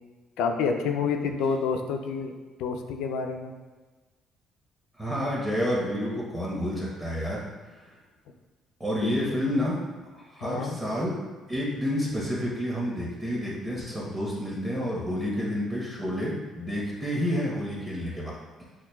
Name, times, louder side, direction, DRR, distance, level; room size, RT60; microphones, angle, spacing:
voice 1, 0.4-2.3 2.6-3.5 8.9-9.1 10.4-10.8, left 5 dB, 85° left, 4 dB, 0.4 m, -28 dB
voice 2, 5.0-7.4 7.7-7.8 8.8-9.8 10.1-11.2 11.5-18.4, equal, 10° right, -6 dB, 0.9 m, -29 dB
5.9 x 2.3 x 2.2 m, 1.3 s
cardioid pair, 115°, 0 cm